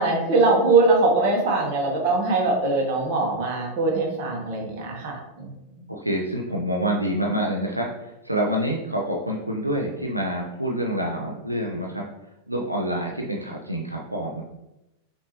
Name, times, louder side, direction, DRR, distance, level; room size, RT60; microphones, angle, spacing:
voice 1, 0.0-5.5, right 3 dB, 45° right, 0 dB, 1.2 m, -22 dB
voice 2, 5.9-12.0 12.5-14.4, right 1 dB, 85° right, -1 dB, 0.4 m, -27 dB
5.9 x 2.7 x 2.9 m, 0.93 s
figure-of-eight pair, 90°, 0 cm